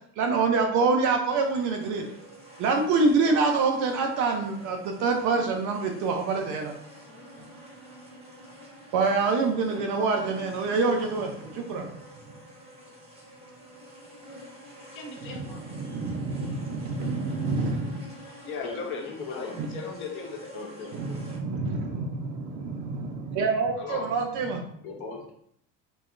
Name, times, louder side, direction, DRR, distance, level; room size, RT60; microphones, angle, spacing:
voice 1, 0.2-2.0 2.6-6.7 8.9-11.9 15.8-18.0 19.6-19.7 21.0-24.6, right 4 dB, 40° right, 3 dB, 0.4 m, -26 dB
sound 1, 1.4-21.4, equal, 15° right, 0.8 m, -46 dB
voice 2, 14.8-15.6 18.1-20.6 23.8-24.1, left 5 dB, 25° left, 2 dB, 0.5 m, -38 dB
voice 3, 19.0-19.6 19.8-20.0 20.5-21.3 24.8-25.3, left 4 dB, 60° left, -1 dB, 0.9 m, -39 dB
2.7 x 2.2 x 2.3 m, 0.68 s
figure-of-eight pair, 60°, 48 cm